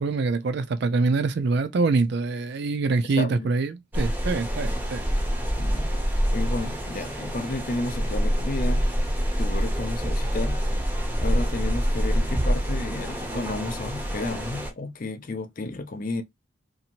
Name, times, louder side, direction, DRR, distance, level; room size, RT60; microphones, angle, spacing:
voice 1, 0.0-5.0, right 3 dB, 55° right, 0.4 m, -25 dB
voice 2, 3.0-3.5 5.6-5.9 6.3-8.9 9.4-10.6 11.2-16.2, left 2 dB, 40° left, 0.5 m, -32 dB
sound 1, 3.9-14.7, equal, 10° right, 0.6 m, -26 dB
2.7 x 2.5 x 2.8 m
head